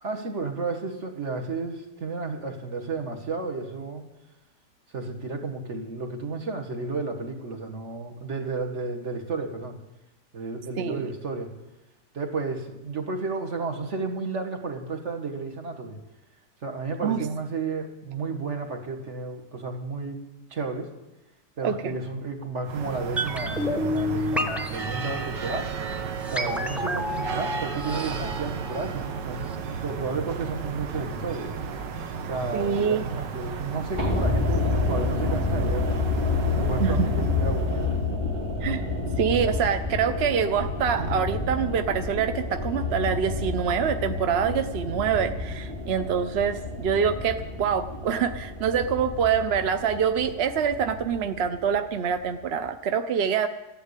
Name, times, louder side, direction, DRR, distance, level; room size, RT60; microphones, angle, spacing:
voice 1, 0.0-4.1 4.9-9.8 10.3-11.5 12.1-16.0 16.6-20.2 20.5-20.9 21.6-25.7 26.3-29.4 29.8-31.5 32.3-36.0 36.6-37.9 41.0-41.2, right 3 dB, 45° right, 4 dB, 1.9 m, -32 dB
voice 2, 21.6-22.0 32.5-33.0 36.8-36.9 38.6-38.9 39.2-53.5, right 7 dB, 60° right, 9 dB, 0.7 m, -25 dB
sound 1, 22.6-38.1, right 6 dB, 85° right, 1.6 m, -34 dB
sound 2, 23.2-29.2 29.5-29.6, left 1 dB, ahead, 0.8 m, -31 dB
sound 3, 34.0-52.2 52.4-52.5, left 3 dB, 15° right, 1.9 m, -29 dB
14.0 x 11.0 x 8.1 m, 0.99 s
omnidirectional pair, 1.8 m